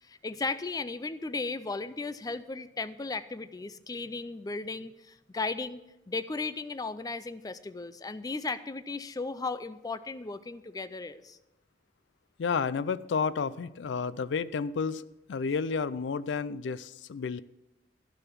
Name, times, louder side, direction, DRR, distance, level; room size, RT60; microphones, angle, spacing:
voice 1, 0.0-11.4, left 3 dB, 20° left, 14 dB, 0.4 m, -36 dB
voice 2, 12.4-17.4, left 5 dB, 85° left, 18 dB, 0.4 m, -31 dB
12.0 x 6.6 x 6.0 m, 0.96 s
head